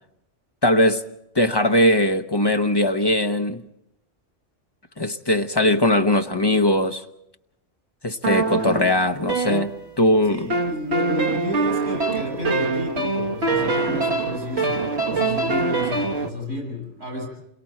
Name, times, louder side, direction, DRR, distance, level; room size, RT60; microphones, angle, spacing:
voice 1, 0.6-1.0 1.3-3.6 5.0-7.0 8.0-10.5, left 1 dB, 25° left, 0.9 m, -20 dB
sound 1, 8.2-10.1 10.5-16.3, right 3 dB, 65° right, 1.8 m, -24 dB
voice 2, 10.3-17.3, left 1 dB, 85° right, 7.0 m, -31 dB
28.0 x 23.0 x 4.4 m
omnidirectional pair, 1.2 m